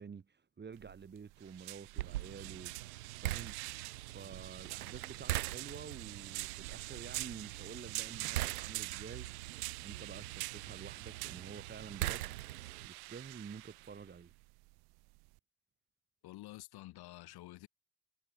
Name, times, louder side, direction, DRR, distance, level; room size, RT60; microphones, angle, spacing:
voice 1, 0.0-9.3 9.8-12.3 12.8-14.3, right 6 dB, 25° right, 1.4 m, -50 dB
sound 1, 0.7-15.4, right 24 dB, 60° right, 0.8 m, -46 dB
sound 2, 2.0-12.9, right 16 dB, 85° right, 1.4 m, -42 dB
voice 2, 16.2-17.7, left 17 dB, 60° left, 4.6 m, -50 dB
hypercardioid pair, 65°, 43 cm